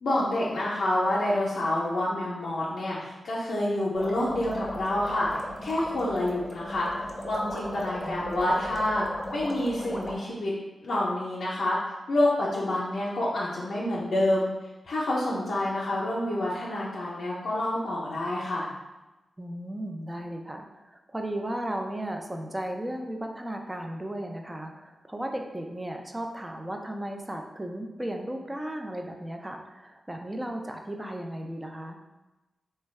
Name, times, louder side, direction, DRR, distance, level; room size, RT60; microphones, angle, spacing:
voice 1, 0.0-6.9 7.2-9.0 9.3-10.5 10.8-11.8 12.1-14.5 14.8-18.7, left 1 dB, 75° left, -7 dB, 0.6 m, -28 dB
sound 1, 3.9-10.2, left 1 dB, 25° left, 0.7 m, -37 dB
voice 2, 8.0-8.5 19.4-32.0, right 1 dB, 20° right, 3 dB, 0.4 m, -35 dB
3.3 x 2.2 x 3.1 m, 1.1 s
cardioid pair, 45°, 0 cm